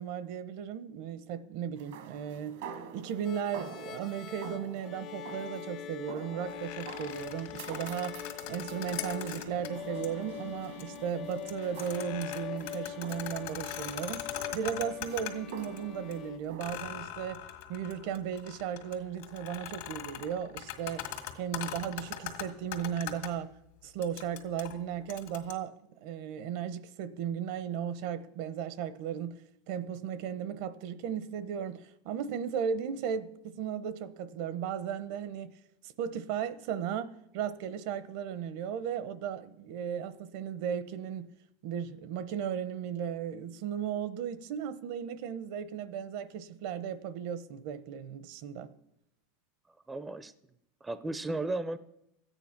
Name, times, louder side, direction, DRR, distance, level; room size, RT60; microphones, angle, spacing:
voice 1, 0.0-2.6 2.9-17.4 17.7-21.1 21.3-23.5 23.8-29.3 29.7-35.5 35.8-41.3 41.6-48.7, right 8 dB, 60° right, 0.8 m, -36 dB
sound 1, 1.8-17.2, right 6 dB, 75° right, 1.4 m, -48 dB
sound 2, 3.2-16.4, left 9 dB, 40° left, 0.7 m, -43 dB
sound 3, 6.5-9.7 10.0-10.1 10.6-11.0 11.3-15.8 16.1-16.2 16.6-23.3 24.0-25.5, left 12 dB, 70° left, 1.9 m, -41 dB
voice 2, 49.9-50.3 50.8-51.8, right 2 dB, 10° right, 0.5 m, -34 dB
14.0 x 9.2 x 5.9 m
supercardioid pair, 140°, 0 cm